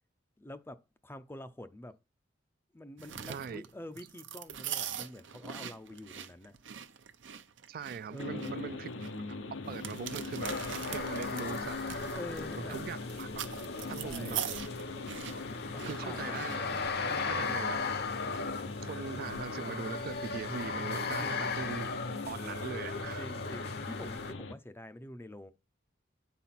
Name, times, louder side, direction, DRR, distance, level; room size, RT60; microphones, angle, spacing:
voice 1, 0.4-1.9 2.7-6.6 7.9-8.6 12.1-12.8 14.0-14.4 15.7-16.4 17.1-17.6 21.2-21.5 23.2-25.5, left 1 dB, 10° left, 0.4 m, -46 dB
sound 1, 3.0-17.0, right 9 dB, 75° right, 0.7 m, -42 dB
voice 2, 3.2-3.6 7.7-8.9 9.5-12.0 12.6-13.3 13.9-14.5 14.9-15.2 15.8-16.7 17.3-17.9 18.2-18.5 18.8-22.0 22.3-23.3, right 6 dB, 50° right, 0.3 m, -41 dB
sound 2, 8.2-24.5, left 3 dB, 85° left, 0.8 m, -42 dB
sound 3, 10.4-24.3, left 4 dB, 55° left, 0.8 m, -37 dB
9.2 x 4.1 x 5.8 m
head